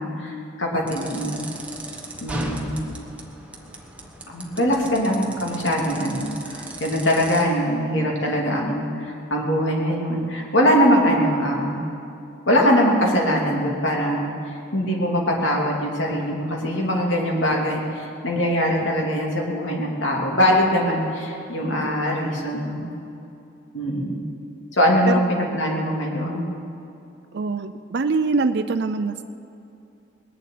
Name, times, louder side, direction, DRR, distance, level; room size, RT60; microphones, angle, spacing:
voice 1, 0.0-1.4 2.2-2.8 4.3-11.9 12.5-22.9 23.7-24.2 24.7-26.4, equal, 75° left, -1 dB, 2.9 m, -22 dB
sound 1, 0.9-7.4, right 1 dB, 5° right, 1.3 m, -37 dB
voice 2, 27.3-29.3, right 4 dB, 55° right, 8 dB, 0.5 m, -23 dB
20.0 x 7.6 x 9.3 m, 2.7 s
head